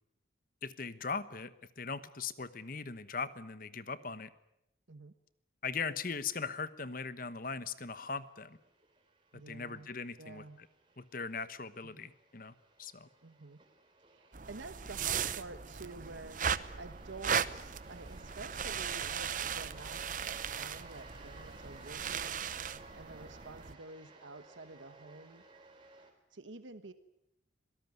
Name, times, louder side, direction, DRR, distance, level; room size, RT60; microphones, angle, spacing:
voice 1, 0.6-4.3 5.6-8.6 9.5-10.7 11.0-12.5 12.8-13.1, left 5 dB, 45° left, 14 dB, 1.1 m, -40 dB
sound 1, 7.8-26.1, right 2 dB, 25° right, 4.0 m, -57 dB
voice 2, 9.3-9.9 10.2-10.6 11.8-11.9 13.2-13.6 14.1-25.4 26.3-26.9, right 3 dB, 80° right, 11 dB, 1.2 m, -50 dB
sound 2, 14.3-23.7, right 7 dB, 45° right, 0.8 m, -37 dB
26.0 x 18.0 x 9.5 m, 0.84 s
head